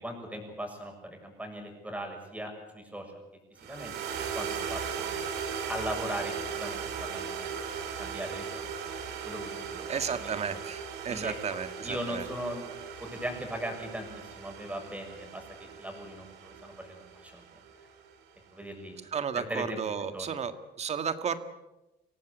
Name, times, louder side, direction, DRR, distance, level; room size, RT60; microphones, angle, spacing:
voice 1, 0.0-3.2 3.7-3.9 4.3-5.1 5.7-7.6 8.0-8.6 9.2-9.8 10.1-10.3 11.1-11.3 11.8-12.6 13.0-17.4 18.5-19.0 19.3-19.8 20.1-20.3, right 1 dB, 10° right, 3 dB, 6.8 m, -39 dB
sound 1, 3.6-18.0, right 6 dB, 80° right, 3.5 m, -38 dB
voice 2, 9.9-12.2 19.1-21.4, right 6 dB, 40° right, 10 dB, 1.8 m, -33 dB
24.5 x 17.5 x 8.3 m, 1.0 s
cardioid pair, 110°, 17 cm